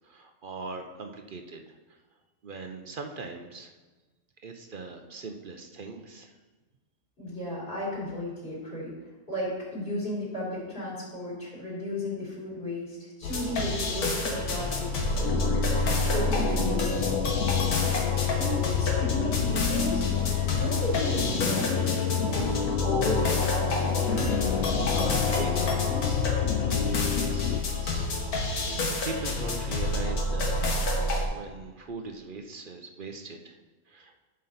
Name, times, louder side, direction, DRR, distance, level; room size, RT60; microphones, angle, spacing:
voice 1, 0.0-2.0 2.4-3.7 4.4-6.3 16.0-16.1 25.3-25.5 27.1-31.0 31.3-33.5 33.9-34.1, right 3 dB, 50° right, 5 dB, 0.7 m, -41 dB
voice 2, 7.2-8.9 9.3-17.1 18.3-20.0 20.5-22.5 22.8-24.4 24.9-26.2, left 1 dB, 40° left, -8 dB, 3.6 m, -34 dB
sound 1, 13.2-31.2, left 2 dB, 80° left, 1.8 m, -28 dB
sound 2, 15.2-27.6, left 9 dB, 65° left, 0.8 m, -29 dB
11.0 x 6.4 x 4.1 m, 1.2 s
omnidirectional pair, 1.5 m